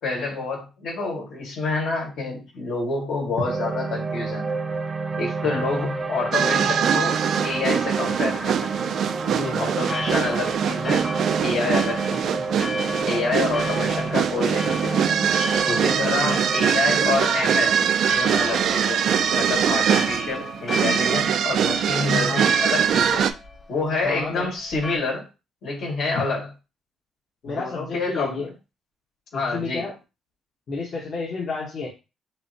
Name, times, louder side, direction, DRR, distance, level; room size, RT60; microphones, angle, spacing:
voice 1, 0.0-4.5 5.2-8.7 9.6-11.1 11.4-12.4 13.0-15.3 15.7-19.0 19.3-23.3 23.7-25.3 25.6-26.5 27.4-28.5 29.3-29.9, left 3 dB, 75° left, -2 dB, 2.3 m, -28 dB
sound 1, 3.4-19.7, right 3 dB, 30° right, 0.7 m, -30 dB
sound 2, 6.3-23.3, right 8 dB, 70° right, 0.4 m, -23 dB
voice 2, 9.2-9.7 16.0-16.4 22.3-22.5 24.0-24.5 26.1-26.2 27.4-28.5 29.5-29.9 30.7-31.9, left 4 dB, 55° left, -4 dB, 1.2 m, -31 dB
Church bell, 9.8-25.0, left 2 dB, 35° left, 0.9 m, -35 dB
6.4 x 2.2 x 2.9 m, 0.28 s
cardioid pair, 90°, 0 cm